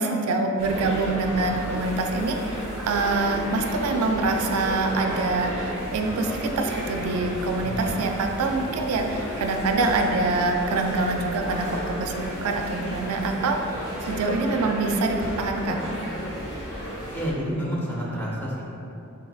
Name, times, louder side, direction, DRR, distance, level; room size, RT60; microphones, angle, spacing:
voice 1, 0.0-15.8, right 3 dB, 85° right, 4 dB, 0.3 m, -25 dB
sound 1, 0.6-17.3, equal, 40° left, 1.4 m, -33 dB
voice 2, 17.1-18.6, equal, 10° left, -5 dB, 0.7 m, -28 dB
4.5 x 3.7 x 2.3 m, 2.7 s
head